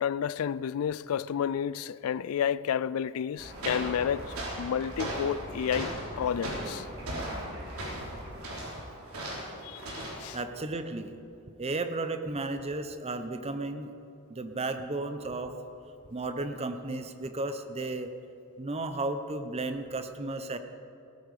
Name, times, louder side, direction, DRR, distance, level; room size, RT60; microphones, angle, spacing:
voice 1, 0.0-5.9 6.2-6.9 9.6-10.4, left 8 dB, 75° left, 0.3 m, -31 dB
sound 1, 3.4-8.5, equal, 50° right, 3.1 m, -45 dB
sound 2, 3.4-10.3, right 1 dB, 80° right, 3.7 m, -38 dB
voice 2, 10.3-11.2 11.6-13.9 14.3-15.6 16.1-18.1 18.6-20.6, right 2 dB, 30° right, 0.8 m, -34 dB
17.5 x 13.5 x 4.9 m
head